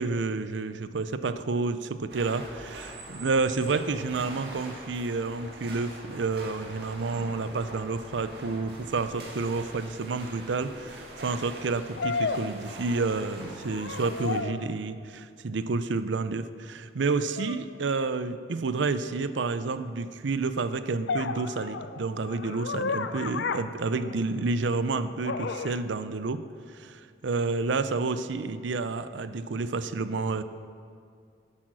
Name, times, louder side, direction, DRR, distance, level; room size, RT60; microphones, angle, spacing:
voice 1, 0.0-26.4 26.7-30.4, right 3 dB, 85° right, 12 dB, 0.5 m, -30 dB
sound 1, 2.1-14.4, right 1 dB, 60° right, 2.2 m, -44 dB
sound 2, 9.6-9.7 12.0-13.3 13.6-14.7 17.4-17.6 21.1-24.6 25.2-25.8, left 4 dB, 75° left, 0.5 m, -33 dB
11.0 x 8.5 x 6.2 m, 2.3 s
head